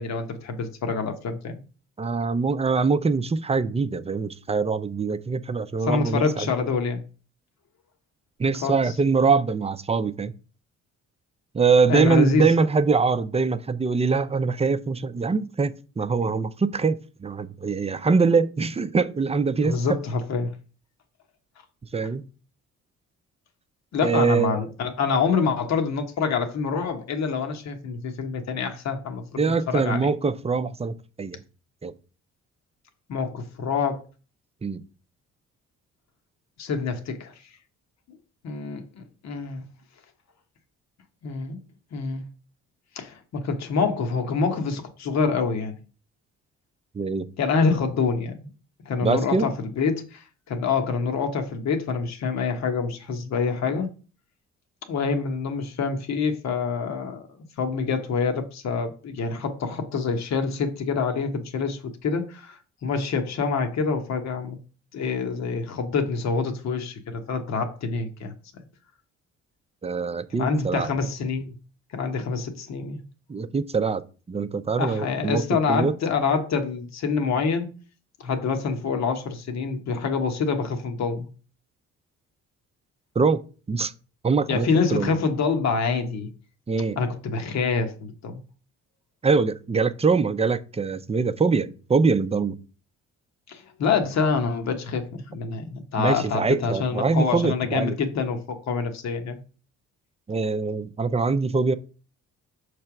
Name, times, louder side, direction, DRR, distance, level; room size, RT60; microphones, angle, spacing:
voice 1, 0.0-1.6 5.8-7.0 8.6-8.9 11.9-12.5 19.6-20.6 23.9-30.1 33.1-34.0 36.6-37.3 38.4-39.7 41.2-41.6 41.9-42.2 42.9-45.8 47.4-48.5 48.8-53.9 54.9-57.3 57.6-64.6 64.9-68.3 70.4-71.5 71.9-73.0 74.8-77.7 78.2-81.3 84.5-86.3 87.0-88.4 93.5-99.4, left 5 dB, 60° left, 1.2 m, -26 dB
voice 2, 2.0-6.5 8.4-10.3 11.5-19.8 21.9-22.3 24.0-24.6 29.4-31.4 31.8-31.9 34.6-34.8 46.9-47.3 49.0-49.5 69.8-70.9 73.3-74.0 74.3-75.4 75.7-75.9 83.2-83.4 83.7-83.9 84.2-85.2 86.7-87.0 89.2-92.6 96.0-97.9 100.3-101.7, right 4 dB, 20° right, 0.5 m, -23 dB
6.4 x 3.3 x 5.9 m
cardioid pair, 90°, 30 cm